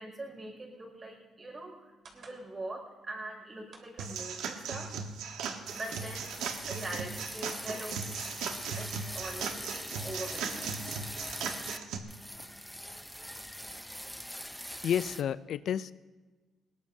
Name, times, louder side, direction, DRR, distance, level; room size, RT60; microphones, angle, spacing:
voice 1, 0.0-5.0 5.7-8.0 8.7-10.6 12.3-13.0, right 1 dB, 30° right, 0 dB, 5.8 m, -43 dB
sound 1, 2.0-2.4 3.7-4.2 5.1-6.0 6.8-6.9 7.2-8.4, right 4 dB, 50° right, 2.9 m, -54 dB
sound 2, 4.0-12.0, right 6 dB, 90° right, 1.3 m, -38 dB
sound 3, 5.7-11.8 12.1-15.2, equal, ahead, 0.7 m, -42 dB
voice 2, 14.8-15.9, left 9 dB, 70° left, 15 dB, 0.4 m, -30 dB
20.5 x 18.5 x 2.7 m, 1.3 s
cardioid pair, 90°, 0 cm